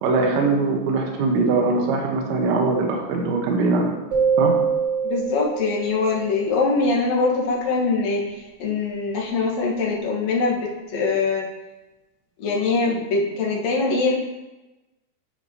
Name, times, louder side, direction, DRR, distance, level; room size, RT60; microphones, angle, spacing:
voice 1, 0.0-3.9 4.4-4.5, right 3 dB, 80° right, 1 dB, 3.4 m, -21 dB
sound 1, 4.1-6.4, right 6 dB, 40° right, 3.0 m, -23 dB
voice 2, 5.0-8.2 8.6-11.5 12.4-14.1, left 3 dB, 70° left, -3 dB, 1.6 m, -23 dB
12.0 x 6.4 x 2.8 m, 1.0 s
omnidirectional pair, 5.2 m